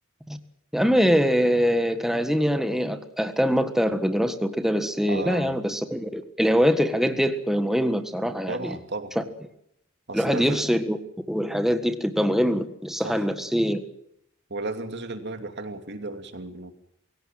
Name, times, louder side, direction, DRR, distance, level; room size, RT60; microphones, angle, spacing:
voice 1, 0.7-8.8 9.1-9.2 10.1-11.0 11.3-13.8, equal, ahead, 8 dB, 1.6 m, -23 dB
voice 2, 5.1-5.6 8.5-9.1 10.1-10.6 13.0-13.3 14.5-16.7, right 2 dB, 55° right, 7 dB, 2.8 m, -34 dB
24.5 x 17.0 x 9.1 m, 0.79 s
head